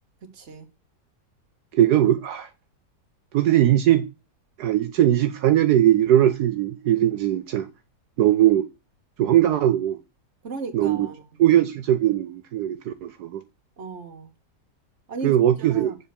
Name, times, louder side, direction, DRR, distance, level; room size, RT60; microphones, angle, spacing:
voice 1, 0.3-0.7 10.4-11.2 13.8-14.3 15.1-16.0, right 4 dB, 45° right, 1.6 m, -35 dB
voice 2, 1.7-2.5 3.3-4.1 4.6-7.7 8.2-8.7 9.2-10.0 10.7-11.1 11.4-13.4 15.2-15.9, right 12 dB, 75° right, 1.2 m, -20 dB
7.4 x 4.5 x 6.6 m
omnidirectional pair, 1.8 m